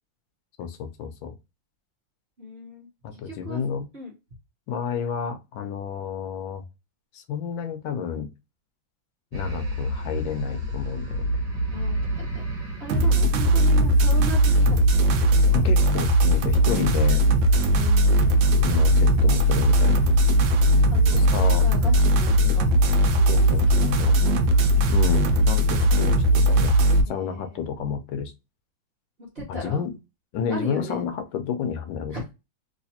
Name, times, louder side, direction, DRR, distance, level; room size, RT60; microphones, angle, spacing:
voice 1, 0.6-1.3 3.0-3.9 4.7-6.6 7.1-8.3 9.3-11.3 15.5-17.3 18.5-20.0 21.1-21.6 22.4-22.7 23.3-24.2 24.9-26.7 27.1-28.3 29.6-29.9 30.3-32.2, left 7 dB, 80° left, 1.3 m, -30 dB
voice 2, 2.4-2.9 3.2-3.6 3.9-4.1 11.7-12.4 12.8-15.6 17.7-18.5 20.9-22.7 23.1-24.3 27.0-27.6 29.2-29.8 30.5-31.0 32.1-32.3, right 1 dB, 40° right, 1.0 m, -38 dB
sound 1, 9.3-14.3, equal, 60° right, 1.5 m, -30 dB
sound 2, 12.9-27.0, right 1 dB, 75° right, 1.3 m, -19 dB
3.2 x 3.1 x 2.7 m
omnidirectional pair, 2.1 m